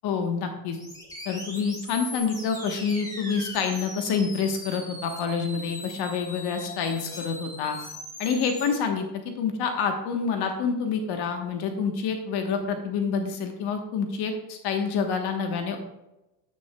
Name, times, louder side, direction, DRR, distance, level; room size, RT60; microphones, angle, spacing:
voice 1, 0.0-0.8 1.2-7.8 8.2-9.1 9.4-15.8, left 5 dB, 55° left, 5 dB, 1.2 m, -27 dB
sound 1, 0.7-8.7, left 1 dB, 5° left, 1.9 m, -40 dB
9.5 x 9.1 x 2.3 m, 0.96 s
supercardioid pair, 125°, 48 cm